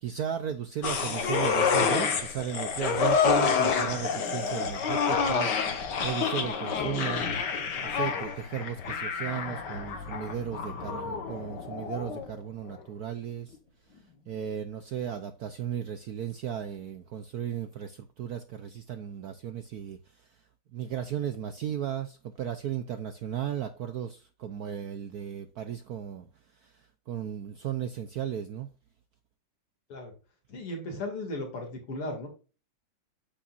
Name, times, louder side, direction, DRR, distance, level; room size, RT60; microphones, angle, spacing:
voice 1, 0.0-7.3 7.8-13.6 14.3-20.3 20.7-26.3 26.6-26.7 27.1-28.7, right 9 dB, 70° right, 0.9 m, -35 dB
sound 1, 0.8-12.3 12.7-12.8, left 6 dB, 55° left, 1.8 m, -28 dB
voice 2, 30.5-32.3, left 1 dB, 85° left, 3.3 m, -36 dB
8.6 x 8.3 x 2.5 m
omnidirectional pair, 2.4 m